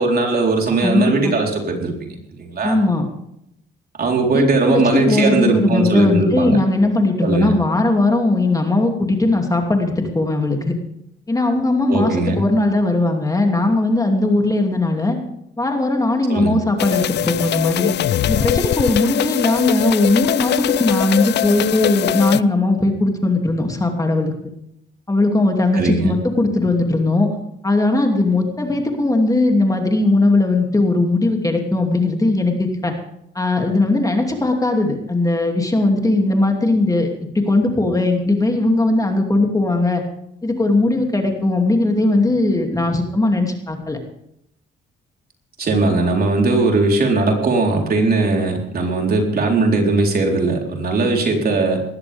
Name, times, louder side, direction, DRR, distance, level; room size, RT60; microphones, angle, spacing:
voice 1, 0.0-2.8 4.0-6.6 7.2-7.5 11.9-12.4 16.3-16.6 25.7-26.1 45.6-51.8, right 3 dB, 50° right, 1 dB, 4.0 m, -19 dB
voice 2, 0.8-1.3 2.6-3.1 4.3-10.7 11.3-15.2 15.6-17.9 18.3-24.3 25.1-27.3 27.6-32.9 33.3-37.1 37.5-40.0 40.4-44.0, left 2 dB, 15° left, 2 dB, 2.7 m, -18 dB
sound 1, 16.8-22.4, left 12 dB, 60° left, 0.5 m, -21 dB
19.0 x 14.5 x 3.5 m, 0.77 s
cardioid pair, 90°, 20 cm